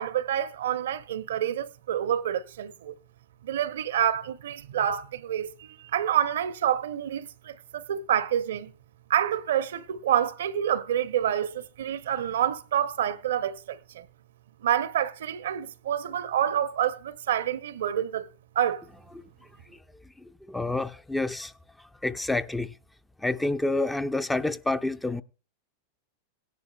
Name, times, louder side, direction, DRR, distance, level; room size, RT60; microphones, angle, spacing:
voice 1, 0.0-2.9 3.4-8.7 9.1-14.1 14.6-18.3 18.6-18.8, right 10 dB, 60° right, 0.6 m, -28 dB
voice 2, 20.5-21.5 22.0-22.7 23.2-25.2, left 2 dB, 5° left, 0.5 m, -28 dB
17.5 x 11.0 x 2.2 m
figure-of-eight pair, 90°, 0 cm